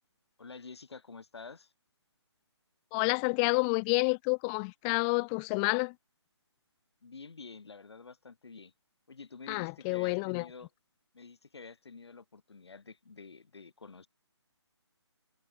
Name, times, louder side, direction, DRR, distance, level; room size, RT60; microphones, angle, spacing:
voice 1, 0.4-1.7 7.0-8.7 9.1-10.7 11.1-14.1, left 4 dB, 65° left, 3.3 m, -49 dB
voice 2, 2.9-5.9 9.5-10.5, left 39 dB, 20° left, 0.9 m, -29 dB
figure-of-eight pair, 145°, 15 cm